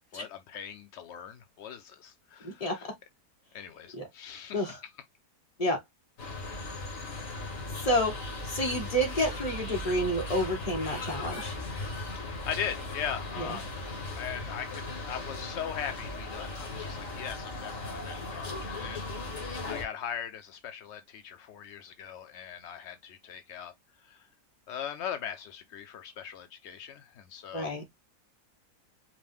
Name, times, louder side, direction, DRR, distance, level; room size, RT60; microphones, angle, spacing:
voice 1, 0.1-2.9 3.5-4.8 12.2-13.7 14.2-19.0 19.7-23.7 24.1-24.2 24.7-27.7, left 8 dB, 80° left, 0.6 m, -40 dB
voice 2, 2.4-2.8 3.9-4.1 4.5-4.8 5.6-5.8 7.8-8.1 8.5-11.5 13.4-13.5 27.5-27.8, equal, 25° left, 1.3 m, -29 dB
sound 1, 6.2-19.8, left 2 dB, 55° left, 2.0 m, -37 dB
4.9 x 2.2 x 3.4 m
omnidirectional pair, 1.7 m